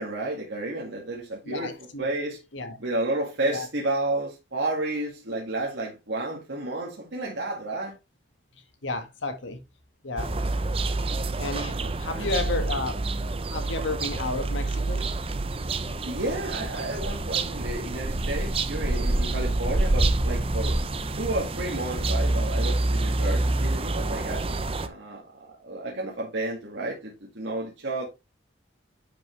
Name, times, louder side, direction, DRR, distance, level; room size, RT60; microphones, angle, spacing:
voice 1, 0.0-2.4 2.8-7.9 11.6-12.3 16.0-20.8 21.2-24.4 24.8-28.1, right 2 dB, 70° right, 2.1 m, -31 dB
voice 2, 1.4-2.1 2.5-2.8 3.4-3.7 8.8-9.6 10.0-10.3 11.4-13.0 13.5-15.1 19.2-19.5, left 3 dB, 80° left, 1.7 m, -32 dB
sound 1, 10.2-24.9, right 2 dB, 30° right, 0.6 m, -27 dB
10.0 x 5.4 x 3.2 m
head